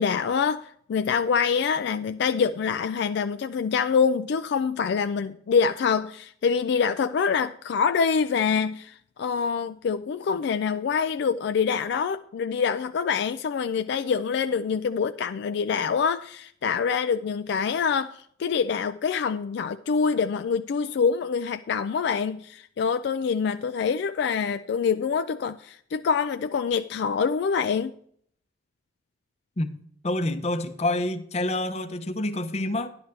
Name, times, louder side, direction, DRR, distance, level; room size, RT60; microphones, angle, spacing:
voice 1, 0.0-27.9, left 6 dB, 65° left, 0.3 m, -25 dB
voice 2, 30.0-32.9, left 1 dB, 35° left, 0.7 m, -27 dB
11.0 x 10.5 x 3.3 m
head